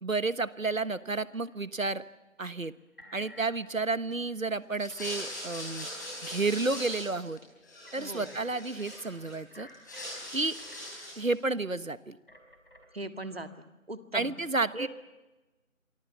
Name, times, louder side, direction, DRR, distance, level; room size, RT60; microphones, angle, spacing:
voice 1, 0.0-2.0 2.4-2.7 3.1-5.9 6.2-7.4 7.9-9.7 10.3-10.5 11.2-12.2 14.1-14.9, right 3 dB, 75° right, 16 dB, 1.3 m, -31 dB
sound 1, 1.5-2.1 3.0-3.5 3.9-4.0 4.7-5.3 5.6-5.7 6.1-6.5 7.4-7.5 7.7-8.7 9.5-11.0 12.3-12.9, left 1 dB, 40° left, 4.6 m, -54 dB
sound 2, 4.7-7.4 7.6-9.3 9.7-11.3, left 1 dB, 15° left, 6.7 m, -41 dB
voice 2, 8.0-8.4 12.9-14.3 14.7-14.9, right 2 dB, 45° right, 9 dB, 1.9 m, -39 dB
28.5 x 24.0 x 7.1 m, 1.1 s
figure-of-eight pair, 170°, 40 cm